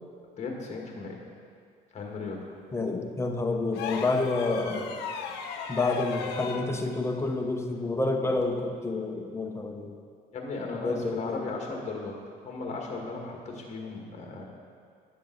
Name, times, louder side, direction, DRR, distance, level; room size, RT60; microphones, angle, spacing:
voice 1, 0.4-1.2 1.9-2.5 5.6-5.8 10.3-12.2 12.5-14.4, left 3 dB, 40° left, 0 dB, 1.7 m, -36 dB
voice 2, 2.7-4.9 5.7-9.9 10.8-11.5, left 3 dB, 15° left, 3 dB, 0.8 m, -29 dB
sound 1, 3.7-6.7 8.4-8.5, left 6 dB, 85° left, 0.8 m, -36 dB
11.0 x 6.7 x 3.9 m, 2.2 s
cardioid pair, 110°, 17 cm